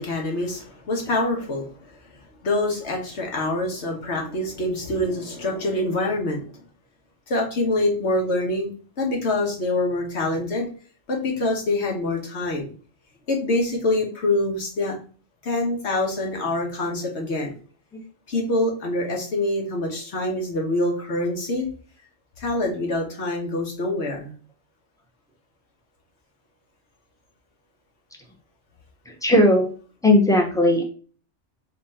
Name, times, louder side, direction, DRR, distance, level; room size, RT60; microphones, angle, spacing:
voice 1, 0.0-1.8 2.4-6.5 7.3-8.7 9.0-10.7 11.1-12.7 13.3-15.0 15.4-17.5 18.3-21.6 22.4-24.3, left 2 dB, 65° left, 0 dB, 1.4 m, -25 dB
voice 2, 29.2-29.7 30.0-30.8, left 1 dB, 5° left, 1 dB, 0.7 m, -17 dB
4.3 x 2.5 x 4.2 m, 0.40 s
omnidirectional pair, 1.2 m